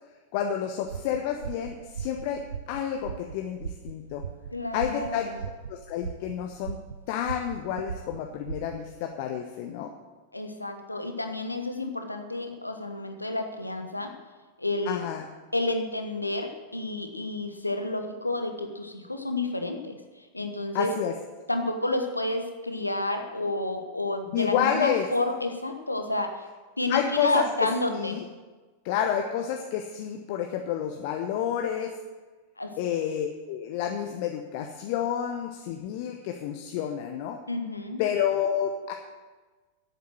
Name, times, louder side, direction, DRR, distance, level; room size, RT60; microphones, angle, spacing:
voice 1, 0.3-4.2 4.7-5.2 5.7-6.8 7.1-9.9 14.9-15.2 20.7-21.1 24.3-25.1 26.9-27.4 27.9-28.2 28.8-31.9 32.8-37.4 38.0-38.9, left 9 dB, 45° left, 4 dB, 1.0 m, -29 dB
sound 1, 0.8-9.0, right 6 dB, 70° right, 0.5 m, -39 dB
voice 2, 4.5-5.4 10.3-14.1 14.6-15.0 15.5-20.0 20.3-20.9 21.5-26.3 26.8-28.2 32.6-32.7 37.5-38.0, left 2 dB, 85° left, 5 dB, 1.3 m, -30 dB
10.5 x 8.4 x 7.9 m, 1.3 s
figure-of-eight pair, 90°, 0 cm